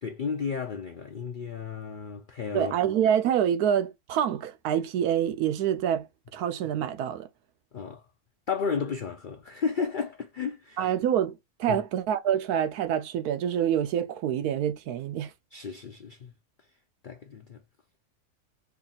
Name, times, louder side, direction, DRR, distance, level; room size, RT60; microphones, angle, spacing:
voice 1, 0.0-2.7 7.7-8.0 8.5-10.9 11.7-11.8 15.5-16.3 17.0-17.6, left 6 dB, 75° left, 0.4 m, -33 dB
voice 2, 2.5-7.3 10.8-15.3, right 9 dB, 85° right, 1.2 m, -26 dB
3.4 x 2.4 x 3.9 m
omnidirectional pair, 1.6 m